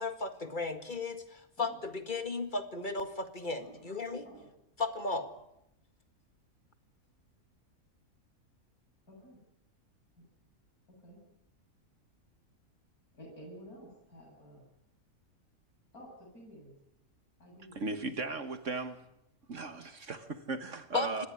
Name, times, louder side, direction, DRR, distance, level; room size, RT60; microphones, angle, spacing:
voice 1, 0.0-4.2 4.8-5.3 20.9-21.3, left 3 dB, 35° left, 8 dB, 2.0 m, -35 dB
voice 2, 9.1-9.4 10.2-10.3 10.9-11.2 13.1-14.7 15.9-16.8 17.4-17.9, equal, 85° left, -2 dB, 8.7 m, -52 dB
voice 3, 17.7-19.0 19.5-21.3, right 3 dB, 55° right, 10 dB, 1.8 m, -37 dB
26.5 x 19.0 x 9.6 m, 0.82 s
omnidirectional pair, 1.5 m